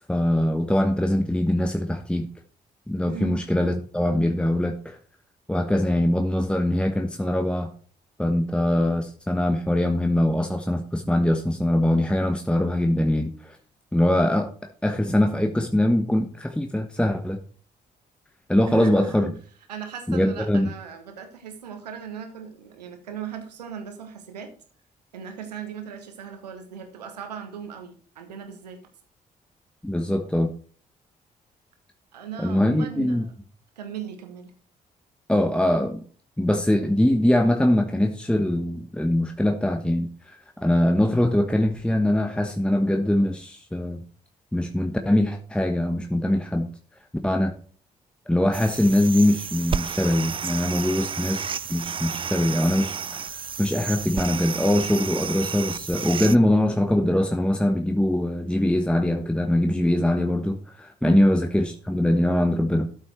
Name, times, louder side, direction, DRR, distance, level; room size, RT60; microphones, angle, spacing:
voice 1, 0.1-2.3 2.9-5.0 5.5-7.7 8.2-13.6 13.9-14.5 14.8-17.4 18.5-19.3 20.1-20.7 29.8-30.5 32.4-33.2 35.3-36.0 36.4-44.0 44.5-46.7 47.2-47.5 48.3-53.0 53.6-62.9, left 1 dB, 5° left, 5 dB, 1.2 m, -22 dB
voice 2, 3.1-3.4 18.7-19.4 19.7-24.5 25.1-28.8 32.1-33.3 33.8-34.5, right 7 dB, 80° right, 6 dB, 1.4 m, -37 dB
sound 1, 48.5-56.4, right 7 dB, 25° right, 0.4 m, -32 dB
13.0 x 5.7 x 4.4 m, 0.43 s
figure-of-eight pair, 40°, 21 cm